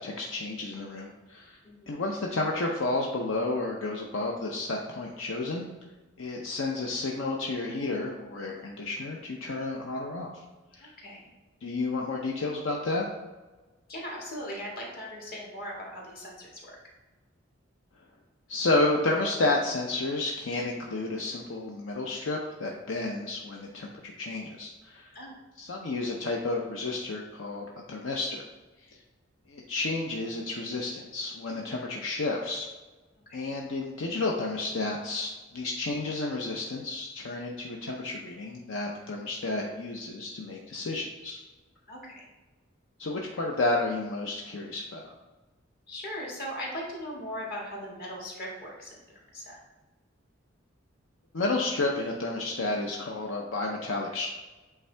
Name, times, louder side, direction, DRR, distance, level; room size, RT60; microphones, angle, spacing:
voice 1, 0.0-1.6 1.9-5.7 6.2-10.3 10.7-10.9 11.6-13.1 18.5-25.1 25.6-28.4 28.9-29.0 29.5-32.7 33.3-41.4 43.0-45.0 51.3-54.3, left 2 dB, 75° left, 0 dB, 0.6 m, -31 dB
voice 2, 10.8-11.3 13.9-16.8 25.1-25.3 33.3-33.5 41.9-42.3 45.9-49.6, equal, 50° left, -3 dB, 1.8 m, -39 dB
8.2 x 3.5 x 3.3 m, 1.2 s
head